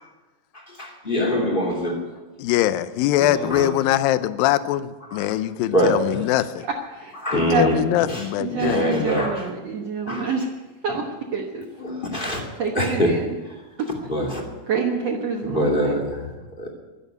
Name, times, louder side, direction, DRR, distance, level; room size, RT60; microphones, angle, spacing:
voice 1, 0.5-2.1 3.2-3.7 5.1-5.3 5.7-6.2 7.2-7.8 8.0-9.5 10.1-10.3 10.9-11.0 11.8-12.4 12.7-13.1 14.1-14.4 15.4-16.8, equal, 15° left, 0 dB, 2.0 m, -24 dB
voice 2, 2.4-6.6 7.3-8.9, left 13 dB, 85° left, 13 dB, 2.4 m, -22 dB
voice 3, 6.6-7.8 8.4-10.5 10.8-11.0 11.3-11.7 12.6-13.4 13.8-13.9 14.7-16.0, right 5 dB, 60° right, 0 dB, 2.0 m, -27 dB
12.0 x 11.5 x 9.1 m, 1.2 s
omnidirectional pair, 4.1 m